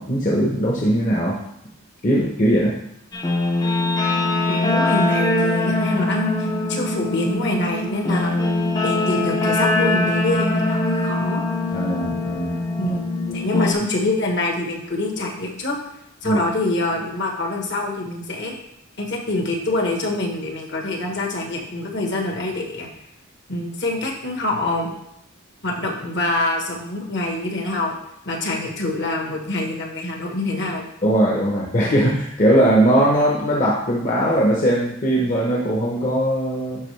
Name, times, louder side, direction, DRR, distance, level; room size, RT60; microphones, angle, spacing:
voice 1, 0.0-1.4 2.0-2.8 11.7-12.6 12.8-12.9 16.2-16.4 31.0-36.8, right 1 dB, 35° left, -3 dB, 0.9 m, -19 dB
Guitar, 3.1-13.7, left 2 dB, 20° left, 0.6 m, -22 dB
voice 2, 4.5-8.4 8.8-11.4 12.8-15.8 16.2-18.5 19.0-22.9 23.5-24.9 25.6-27.9 28.2-30.8, left 2 dB, 55° left, 1 dB, 1.2 m, -25 dB
10.5 x 4.1 x 3.3 m, 0.77 s
head